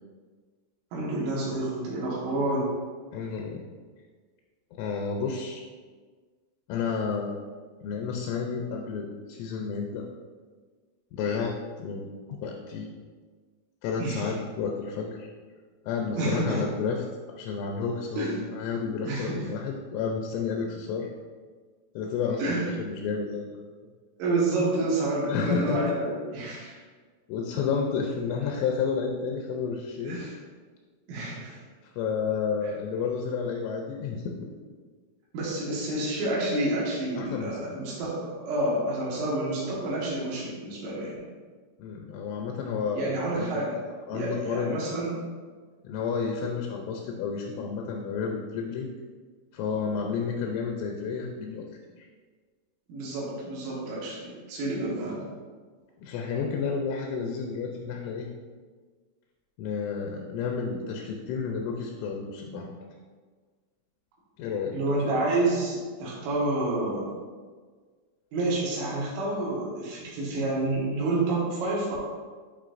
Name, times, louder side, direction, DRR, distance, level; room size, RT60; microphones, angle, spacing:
voice 1, 0.9-2.7 14.0-14.3 16.1-16.6 18.2-18.4 18.8-19.5 22.4-22.7 24.2-26.7 30.0-30.4 31.1-31.6 35.3-41.2 42.9-43.8 44.1-45.1 52.9-55.3 64.7-67.1 68.3-71.9, right 2 dB, 80° right, -6 dB, 4.0 m, -29 dB
voice 2, 3.1-3.6 4.8-5.6 6.7-7.4 7.8-10.1 11.1-11.5 11.8-12.9 13.8-15.3 15.9-17.0 17.4-21.1 22.0-23.6 25.3-26.0 27.3-30.2 31.8-34.5 37.2-37.7 39.1-39.2 41.8-43.7 44.1-45.0 45.8-48.9 49.5-51.7 52.0-52.1 56.0-58.3 59.6-62.7 64.4-64.8, left 5 dB, 80° left, 1 dB, 3.0 m, -31 dB
10.5 x 4.4 x 2.5 m, 1.5 s
omnidirectional pair, 5.8 m